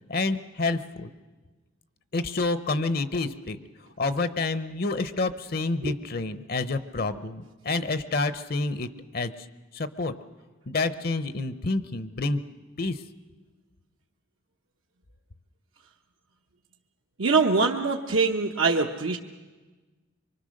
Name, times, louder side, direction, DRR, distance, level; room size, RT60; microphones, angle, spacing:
voice 1, 0.1-1.1 2.1-3.6 4.0-9.5 9.7-10.1 10.7-12.4 12.8-13.0, left 3 dB, 45° left, 12 dB, 0.7 m, -28 dB
voice 2, 17.2-19.2, right 4 dB, 80° right, 2 dB, 1.0 m, -23 dB
25.0 x 23.5 x 6.5 m, 1.3 s
head